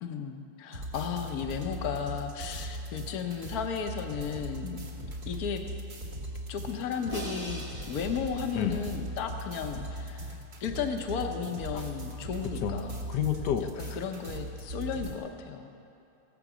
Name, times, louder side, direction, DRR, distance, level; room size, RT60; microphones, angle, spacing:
voice 1, 0.0-4.8 5.3-5.6 6.5-13.1 13.6-15.7, left 6 dB, 70° left, 5 dB, 1.4 m, -34 dB
sound 1, 0.7-15.1, right 1 dB, 70° right, 2.4 m, -39 dB
Crash cymbal, 7.1-9.3, right 1 dB, 20° right, 1.3 m, -43 dB
voice 2, 13.1-14.0, left 9 dB, 90° left, 6 dB, 1.4 m, -29 dB
17.0 x 8.1 x 6.1 m, 2.8 s
omnidirectional pair, 1.7 m